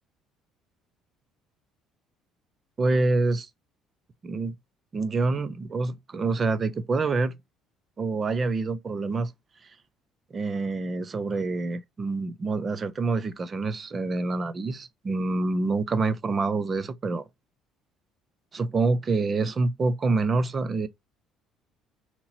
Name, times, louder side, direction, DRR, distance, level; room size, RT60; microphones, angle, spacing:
voice 1, 2.8-3.5 4.2-4.5 4.9-7.4 8.0-9.3 10.3-17.2 18.5-20.9, right 3 dB, 20° right, 0.4 m, -26 dB
2.9 x 2.8 x 3.9 m
cardioid pair, 175°, 0 cm